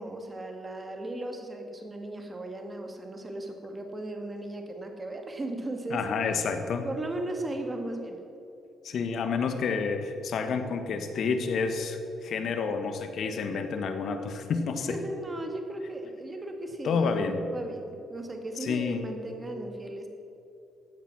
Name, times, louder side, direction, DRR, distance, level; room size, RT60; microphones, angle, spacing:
voice 1, 0.0-6.4 6.8-8.2 14.9-17.3 17.5-20.1, right 2 dB, 25° right, 4 dB, 2.1 m, -36 dB
voice 2, 5.9-6.8 8.8-15.0 16.8-17.4 18.6-19.0, left 5 dB, 65° left, 7 dB, 1.4 m, -29 dB
15.5 x 9.3 x 6.1 m, 2.7 s
cardioid pair, 90°, 0 cm